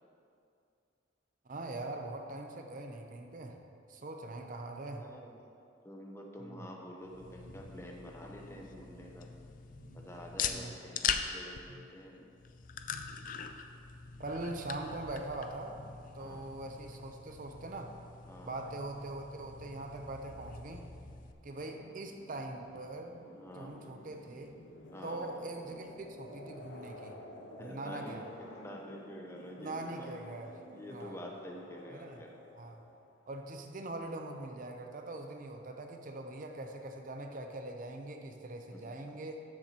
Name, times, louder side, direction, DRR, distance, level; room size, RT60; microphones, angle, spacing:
voice 1, 1.5-3.6 3.9-5.1 6.4-6.7 9.8-10.1 10.4-10.7 11.7-11.9 14.2-15.8 16.1-18.0 18.4-20.9 21.4-23.1 23.5-24.5 25.0-27.2 27.6-28.3 29.6-30.5 30.9-31.2 31.9-32.2 32.6-32.8 33.3-39.4, right 2 dB, 45° right, 4 dB, 0.6 m, -42 dB
voice 2, 5.0-5.4 5.8-9.3 9.9-12.3 16.2-16.4 18.3-18.6 23.3-23.7 24.9-25.3 27.6-30.1 30.7-32.3 38.7-39.0, equal, 15° left, 0 dB, 0.7 m, -48 dB
sound 1, 7.0-21.3, left 7 dB, 45° left, 0.4 m, -42 dB
sound 2, 20.9-33.4, left 1 dB, 70° left, 1.0 m, -52 dB
13.0 x 7.1 x 2.9 m, 2.5 s
head